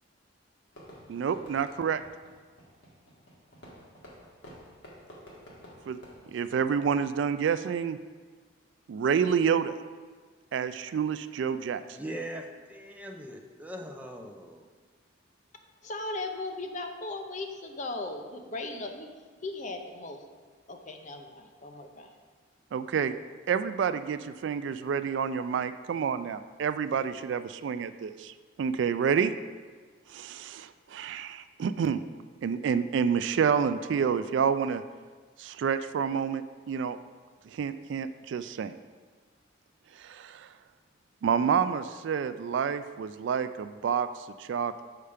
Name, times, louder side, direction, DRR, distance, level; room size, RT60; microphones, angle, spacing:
Fireworks, 0.7-7.2, equal, 65° left, 1.9 m, -52 dB
voice 1, 1.1-2.0 5.9-6.0 6.3-8.0 8.9-9.7 10.5-11.8 22.7-23.1 23.5-29.3 30.1-32.0 32.4-34.8 35.4-37.0 37.5-38.7 40.0-40.5 41.2-44.1 44.4-44.8, right 7 dB, 65° right, 12 dB, 0.3 m, -28 dB
voice 2, 11.9-14.6, right 1 dB, 10° right, 2 dB, 0.6 m, -40 dB
voice 3, 15.8-19.1 19.4-20.2 20.7-22.1, left 2 dB, 40° left, 4 dB, 0.7 m, -37 dB
6.8 x 5.6 x 4.9 m, 1.5 s
head